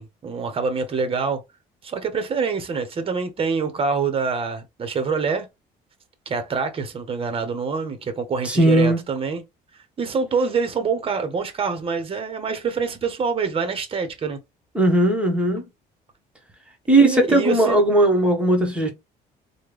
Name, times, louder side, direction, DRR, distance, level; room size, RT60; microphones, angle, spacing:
voice 1, 0.0-1.4 1.8-5.5 6.3-9.4 10.0-14.4 16.9-17.8, right 5 dB, 35° right, 0.9 m, -25 dB
voice 2, 8.4-9.0 14.7-15.6 16.9-18.9, right 1 dB, 5° right, 1.2 m, -18 dB
3.4 x 2.2 x 3.1 m
cardioid pair, 110°, 17 cm